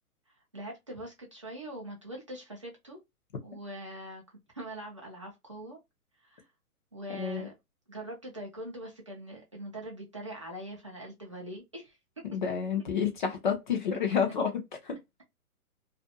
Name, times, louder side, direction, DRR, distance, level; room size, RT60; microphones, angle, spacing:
voice 1, 0.5-3.0 3.4-4.2 4.5-5.8 6.2-6.4 6.9-7.5 7.9-12.2, right 1 dB, 25° right, 0.4 m, -42 dB
voice 2, 12.2-15.0, left 7 dB, 35° left, 0.6 m, -30 dB
2.5 x 2.2 x 2.7 m
hypercardioid pair, 150°, 45 cm